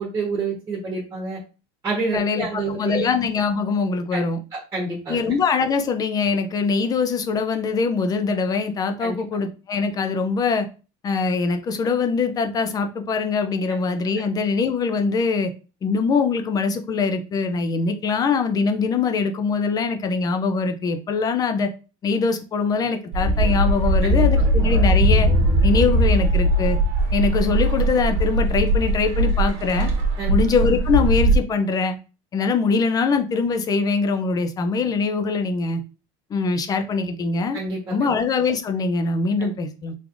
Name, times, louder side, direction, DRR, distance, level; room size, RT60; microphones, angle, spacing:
voice 1, 0.0-1.4 1.8-3.0 4.1-4.2 4.5-5.2 9.0-9.1 24.0-24.4 30.2-30.3 37.5-38.1 39.4-39.5, right 3 dB, 20° right, 1.1 m, -28 dB
voice 2, 2.1-4.4 5.1-10.7 11.0-15.5 15.8-21.7 22.0-25.3 25.6-26.8 27.1-29.9 30.3-32.0 32.3-35.8 36.3-37.6 37.9-40.0, left 4 dB, 25° left, 0.4 m, -23 dB
sound 1, 23.1-31.4, right 1 dB, 60° right, 0.9 m, -19 dB
3.5 x 3.3 x 2.5 m
cardioid pair, 140°, 14 cm